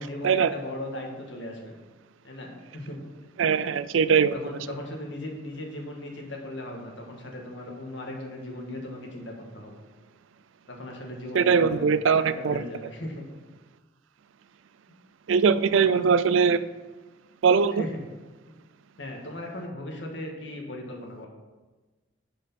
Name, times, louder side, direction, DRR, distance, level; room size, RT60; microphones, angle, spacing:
voice 1, 0.0-1.7 2.2-3.0 4.3-9.8 10.7-11.8 12.1-13.2 15.8-16.1 17.7-18.0 19.0-21.3, left 1 dB, 70° left, 1 dB, 1.7 m, -37 dB
voice 2, 3.4-4.3 11.3-12.6 15.3-16.6 17.4-17.8, right 6 dB, 85° right, 14 dB, 0.4 m, -21 dB
10.5 x 5.3 x 4.1 m, 1.2 s
head